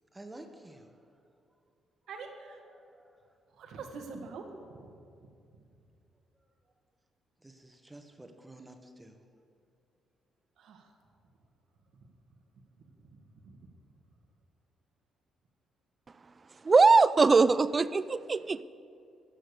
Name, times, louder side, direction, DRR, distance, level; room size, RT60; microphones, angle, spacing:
voice 1, 0.1-1.0 2.7-3.3 7.4-9.2, right 1 dB, 15° right, 5 dB, 1.2 m, -51 dB
voice 2, 2.1-2.6 3.6-4.8 10.6-10.9 13.4-13.6, right 4 dB, 75° right, 4 dB, 1.5 m, -44 dB
voice 3, 16.6-18.6, right 4 dB, 30° right, 16 dB, 0.4 m, -22 dB
16.5 x 6.4 x 6.8 m, 2.5 s
cardioid pair, 90°, 0 cm